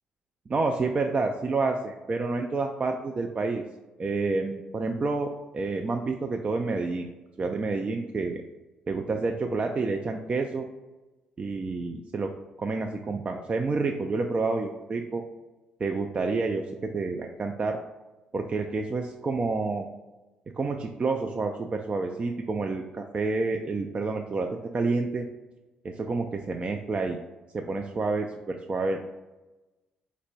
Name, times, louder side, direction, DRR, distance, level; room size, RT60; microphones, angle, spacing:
voice 1, 0.5-3.6 4.0-7.1 7.4-8.4 8.9-10.7 11.4-12.3 12.6-15.2 15.8-17.8 18.3-19.9 20.6-25.3 25.8-27.2 27.5-29.0, right 3 dB, 30° right, 3 dB, 0.3 m, -29 dB
4.2 x 2.1 x 4.0 m, 1.1 s
figure-of-eight pair, 45°, 4 cm